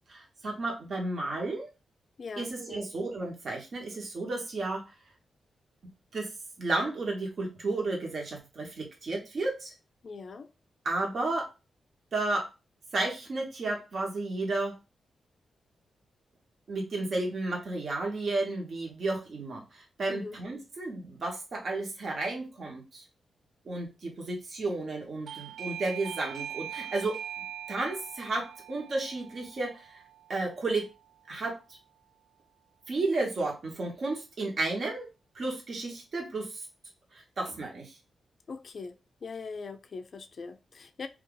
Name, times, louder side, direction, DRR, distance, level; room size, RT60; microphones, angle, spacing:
voice 1, 0.1-1.7 2.4-4.8 6.1-6.3 6.6-9.7 10.8-11.5 12.1-12.5 12.9-14.8 16.7-23.0 23.6-27.2 27.7-30.0 30.3-30.9 31.3-31.8 32.9-35.1 35.3-36.7 37.1-37.9, right 2 dB, 55° right, 1.0 m, -32 dB
voice 2, 2.2-2.8 10.0-10.5 20.1-20.4 38.5-41.1, left 4 dB, 50° left, 0.3 m, -41 dB
Doorbell, 25.3-31.7, right 10 dB, 80° right, 0.4 m, -43 dB
2.6 x 2.3 x 3.7 m
cardioid pair, 105°, 0 cm